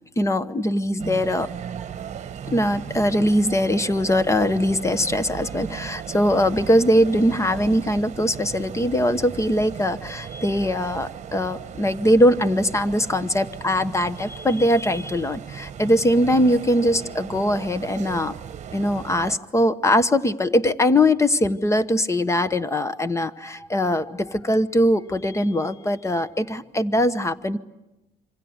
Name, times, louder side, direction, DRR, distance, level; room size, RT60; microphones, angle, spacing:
voice 1, 0.2-1.5 2.5-18.3 18.7-27.6, left 1 dB, 15° left, 14 dB, 1.1 m, -21 dB
sound 1, 1.0-19.4, right 8 dB, 40° right, 1.3 m, -37 dB
27.0 x 25.5 x 8.0 m, 0.97 s
cardioid pair, 110°, 17 cm